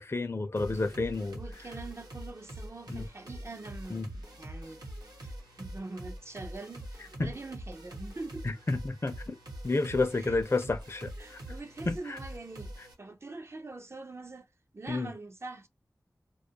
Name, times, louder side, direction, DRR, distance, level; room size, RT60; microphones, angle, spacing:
voice 1, 0.0-1.4 2.9-3.0 3.9-4.1 7.2-7.3 8.4-9.4 9.6-11.4 11.9-12.2 14.9-15.1, left 3 dB, 40° left, 0.4 m, -30 dB
sound 1, 0.6-12.9, right 1 dB, 75° right, 0.9 m, -44 dB
voice 2, 1.4-4.9 5.2-8.5 10.1-10.4 11.2-14.5 14.7-15.7, right 3 dB, 40° right, 0.4 m, -44 dB
2.3 x 2.1 x 2.7 m
wide cardioid pair, 45°, 7 cm